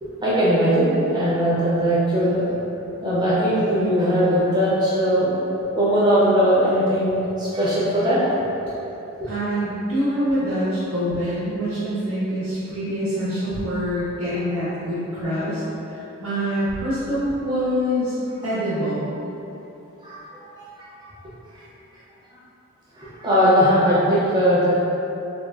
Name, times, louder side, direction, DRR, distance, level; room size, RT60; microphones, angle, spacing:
voice 1, 0.0-2.5 3.0-5.3 5.6-8.4 20.0-20.6 23.0-24.8, equal, 20° right, -9 dB, 0.6 m, -20 dB
voice 2, 9.3-15.6 15.9-18.1 18.4-19.1, equal, 70° right, -13 dB, 1.1 m, -25 dB
3.5 x 2.2 x 2.5 m, 2.9 s
head